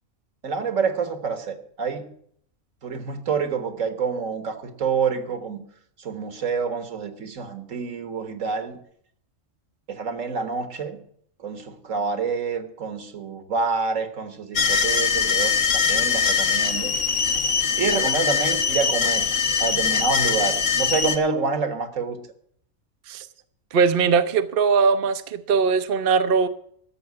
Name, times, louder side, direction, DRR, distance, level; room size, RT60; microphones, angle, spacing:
voice 1, 0.4-2.1 2.8-5.6 6.0-8.8 9.9-11.0 11.4-16.9 17.8-19.3 19.6-22.2, right 5 dB, 70° right, 9 dB, 1.7 m, -27 dB
sound 1, 14.6-21.2, left 6 dB, 55° left, 1.4 m, -22 dB
voice 2, 23.7-26.5, right 5 dB, 50° right, 9 dB, 0.8 m, -20 dB
13.0 x 7.0 x 9.5 m, 0.66 s
omnidirectional pair, 1.4 m